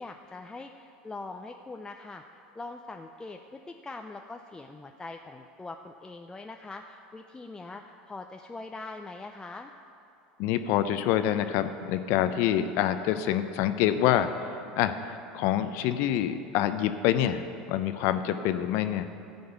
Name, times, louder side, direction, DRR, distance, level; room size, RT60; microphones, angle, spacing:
voice 1, 0.0-2.2 2.5-9.7, left 3 dB, 15° left, 4 dB, 0.5 m, -42 dB
voice 2, 10.4-14.3 14.7-19.1, left 11 dB, 60° left, 10 dB, 0.7 m, -26 dB
13.0 x 5.3 x 8.0 m, 2.7 s
hypercardioid pair, 85°, 5 cm